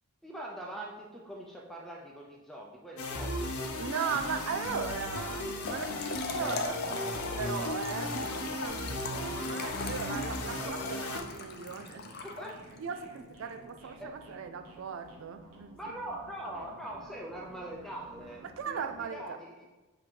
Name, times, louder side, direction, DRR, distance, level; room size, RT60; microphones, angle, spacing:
voice 1, 0.2-3.5 5.6-5.7 6.4-7.0 12.2-12.6 13.8-14.1 15.7-19.7, right 1 dB, ahead, -2 dB, 0.5 m, -43 dB
sound 1, 3.0-11.2, left 2 dB, 80° left, 0.8 m, -36 dB
voice 2, 3.8-6.8 7.4-12.1 12.8-15.8 18.4-19.2, right 6 dB, 60° right, 7 dB, 0.3 m, -38 dB
Trickle dribble / Fill (with liquid), 5.6-12.9, left 3 dB, 45° left, 0.6 m, -40 dB
sound 2, 6.6-19.1, right 1 dB, 85° right, 1.0 m, -53 dB
7.5 x 2.9 x 4.6 m, 1.2 s
head